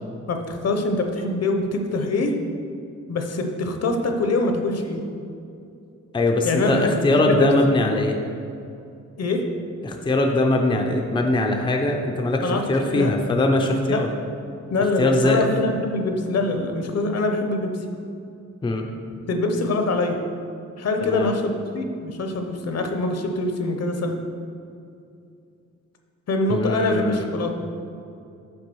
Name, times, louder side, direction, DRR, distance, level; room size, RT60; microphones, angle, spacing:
voice 1, 0.3-2.3 3.1-5.0 6.4-7.5 9.2-9.5 12.4-13.1 13.9-14.0 14.7-17.8 19.3-20.2 20.8-24.2 26.3-27.5, left 2 dB, 55° left, 5 dB, 0.7 m, -24 dB
voice 2, 6.1-8.2 9.8-14.1 15.0-15.4 18.6-18.8 21.0-21.3 26.5-27.3, left 2 dB, 15° left, 2 dB, 0.4 m, -21 dB
6.2 x 4.6 x 6.1 m, 2.5 s
wide cardioid pair, 165°, 30 cm